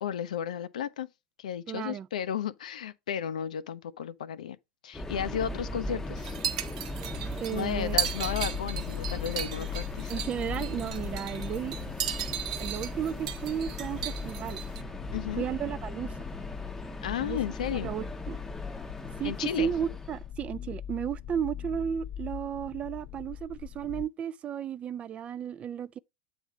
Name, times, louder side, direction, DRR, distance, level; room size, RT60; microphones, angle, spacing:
voice 1, 0.0-1.1 1.4-4.6 4.8-6.4 7.5-10.1 15.1-15.5 17.0-17.9 19.2-19.7, left 9 dB, 70° left, 0.5 m, -33 dB
voice 2, 1.7-2.1 7.4-8.0 8.4-8.5 10.1-11.8 12.6-14.6 15.4-16.2 17.2-17.4 17.7-18.4 19.2-26.0, right 9 dB, 30° right, 0.4 m, -34 dB
Subway metro underground, 4.9-20.3, left 1 dB, 10° left, 0.8 m, -39 dB
sound 1, 6.2-14.8, right 10 dB, 65° right, 0.8 m, -35 dB
sound 2, 7.7-24.0, left 10 dB, 50° left, 0.9 m, -40 dB
8.0 x 3.3 x 4.8 m
hypercardioid pair, 90°, 4 cm